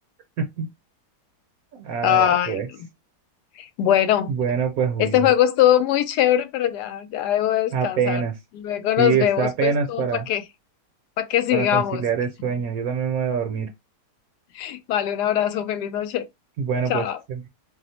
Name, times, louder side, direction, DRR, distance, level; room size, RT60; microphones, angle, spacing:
voice 1, 0.4-0.7 1.7-2.7 4.3-5.3 7.7-8.3 9.0-10.3 11.5-13.7 16.6-17.5, right 6 dB, 70° right, 1.0 m, -25 dB
voice 2, 2.0-2.6 3.6-4.4 5.0-8.2 8.5-10.4 11.2-12.0 14.5-16.3 16.9-17.2, left 11 dB, 80° left, 1.1 m, -22 dB
2.8 x 2.0 x 4.0 m
omnidirectional pair, 1.8 m